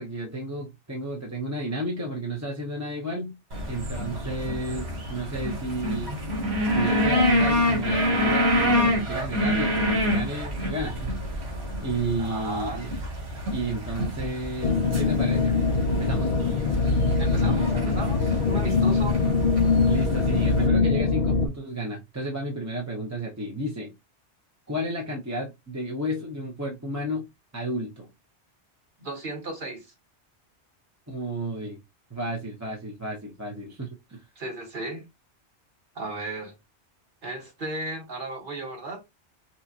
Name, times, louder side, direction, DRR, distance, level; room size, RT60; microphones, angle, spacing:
voice 1, 0.0-3.3 3.7-6.2 6.7-11.2 11.8-12.9 13.5-15.5 15.9-16.3 19.8-23.9 24.7-27.2 27.5-28.1 31.1-31.8 32.1-34.2, right 1 dB, 15° right, 0.8 m, -32 dB
sound 1, 3.5-20.7, equal, 65° right, 1.7 m, -27 dB
voice 2, 12.2-12.8 17.2-19.2 29.0-29.9 34.3-35.0 35.9-36.6 37.2-39.0, right 2 dB, 45° right, 1.6 m, -35 dB
sound 2, 14.6-21.5, left 4 dB, 50° left, 0.5 m, -23 dB
5.6 x 2.4 x 2.8 m
omnidirectional pair, 1.2 m